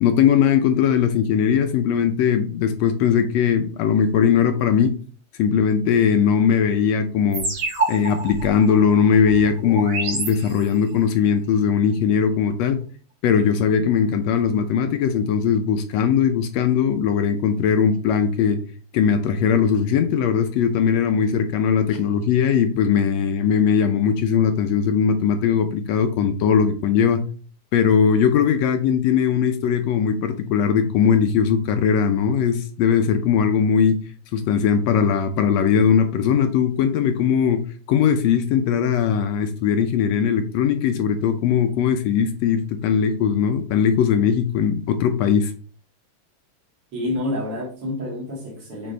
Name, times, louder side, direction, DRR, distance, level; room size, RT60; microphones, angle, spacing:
voice 1, 0.0-4.9 5.4-7.5 7.9-12.8 13.2-18.6 18.9-27.2 27.7-34.0 34.3-37.6 37.9-45.5, left 7 dB, 75° left, 1.7 m, -19 dB
sound 1, 7.3-11.0, right 3 dB, 75° right, 3.5 m, -28 dB
voice 2, 46.9-48.9, left 1 dB, 50° right, 3.0 m, -28 dB
7.8 x 4.1 x 3.3 m
omnidirectional pair, 3.3 m